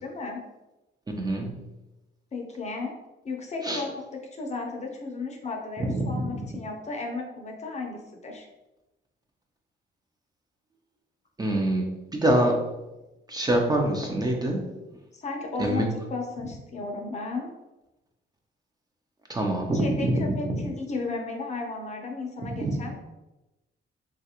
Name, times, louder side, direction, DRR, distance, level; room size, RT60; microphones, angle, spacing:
voice 1, 0.0-0.4 2.3-2.9 3.2-8.5 15.1-17.5 19.7-23.0, left 3 dB, 35° left, 2 dB, 0.6 m, -34 dB
voice 2, 1.2-1.5 3.6-3.8 5.9-6.2 11.4-12.6 13.3-14.6 15.6-15.9 19.3-20.6 22.7-22.8, right 1 dB, 20° right, 1 dB, 0.5 m, -25 dB
3.1 x 2.4 x 2.8 m, 1.0 s
cardioid pair, 90°, 20 cm